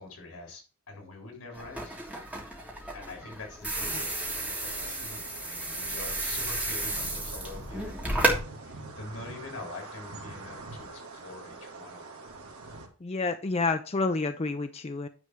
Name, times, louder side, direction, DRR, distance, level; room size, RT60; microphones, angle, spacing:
voice 1, 0.0-2.4 2.9-10.9 11.1-12.2, left 3 dB, 85° left, 2 dB, 3.3 m, -45 dB
sound 1, 1.5-8.4, right 1 dB, 5° right, 1.7 m, -32 dB
sound 2, 3.7-12.9, right 3 dB, 75° right, 1.9 m, -45 dB
voice 2, 13.0-15.1, left 3 dB, 25° left, 8 dB, 0.4 m, -29 dB
9.6 x 3.4 x 6.4 m, 0.35 s
head